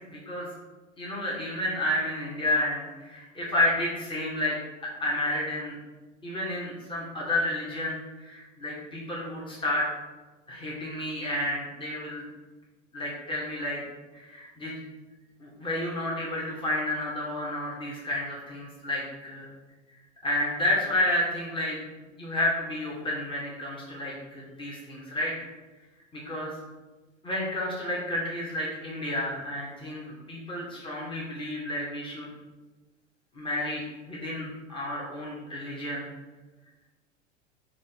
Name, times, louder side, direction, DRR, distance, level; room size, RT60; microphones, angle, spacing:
voice 1, 0.1-0.5 1.0-4.6 5.0-5.8 6.2-9.9 10.5-12.2 12.9-13.8 14.1-14.8 15.4-19.5 20.2-21.8 22.2-25.3 26.1-26.5 27.2-32.3 33.3-36.1, left 1 dB, 15° left, -6 dB, 1.9 m, -31 dB
7.3 x 2.9 x 6.0 m, 1.2 s
hypercardioid pair, 95°, 37 cm